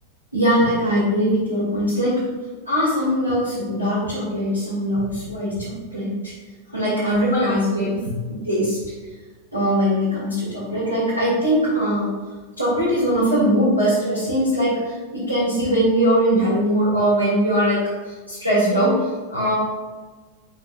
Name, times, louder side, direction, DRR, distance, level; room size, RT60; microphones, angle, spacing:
voice 1, 0.3-2.1 2.7-6.3 6.7-8.0 8.4-8.8 9.5-12.1 12.6-17.8 18.3-19.0 19.3-19.5, equal, 85° right, -9 dB, 2.3 m, -21 dB
8.7 x 6.5 x 2.6 m, 1.3 s
figure-of-eight pair, 90°, 0 cm